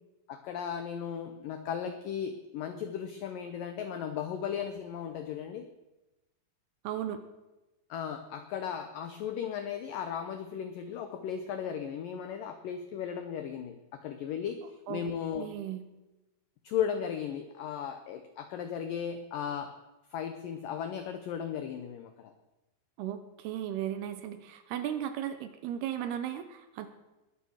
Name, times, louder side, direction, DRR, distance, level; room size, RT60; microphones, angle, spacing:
voice 1, 0.3-5.6 7.9-14.6 14.9-15.5 16.6-19.7 20.1-22.3, left 8 dB, 80° left, 8 dB, 1.9 m, -36 dB
voice 2, 6.8-7.2 14.9-15.1 15.4-15.8 23.0-26.9, right 10 dB, 75° right, 10 dB, 2.6 m, -36 dB
21.0 x 8.4 x 6.4 m, 1.0 s
omnidirectional pair, 5.2 m